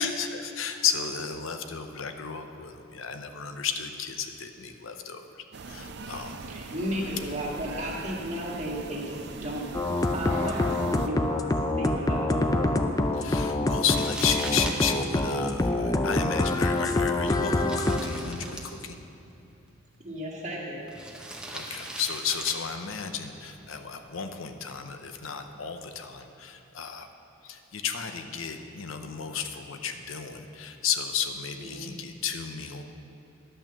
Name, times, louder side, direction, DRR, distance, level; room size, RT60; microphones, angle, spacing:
voice 1, 0.0-5.2 5.7-6.5 13.1-19.0 21.5-27.1 27.4-32.8, left 7 dB, 85° left, 7 dB, 0.7 m, -33 dB
sound 1, 5.5-11.1, right 3 dB, 60° right, 0.5 m, -41 dB
voice 2, 6.5-9.7 10.0-12.6 20.0-20.9 31.6-31.9, equal, 35° right, -3 dB, 1.7 m, -34 dB
sound 2, 9.7-18.0, left 2 dB, 20° left, 0.4 m, -25 dB
Crumpling crinkling, 13.8-24.0, right 1 dB, 5° right, 0.9 m, -43 dB
11.0 x 6.1 x 6.7 m, 2.7 s
head